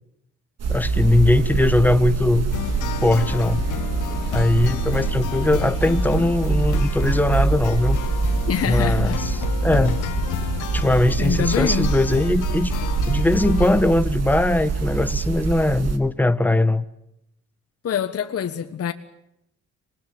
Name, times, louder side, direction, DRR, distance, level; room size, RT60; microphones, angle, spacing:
sound 1, 0.6-16.0, right 4 dB, 55° right, 2.6 m, -24 dB
voice 1, 0.7-2.5 3.0-3.6 4.3-8.0 8.6-9.4 9.6-10.0 10.7-12.7 13.1-16.8, left 2 dB, 5° left, 1.3 m, -20 dB
sound 2, 2.5-13.8, left 12 dB, 85° left, 1.3 m, -31 dB
voice 2, 8.5-9.2 11.2-11.9 17.8-18.9, left 8 dB, 50° left, 1.5 m, -25 dB
26.5 x 20.5 x 9.3 m
cardioid pair, 90°, 30 cm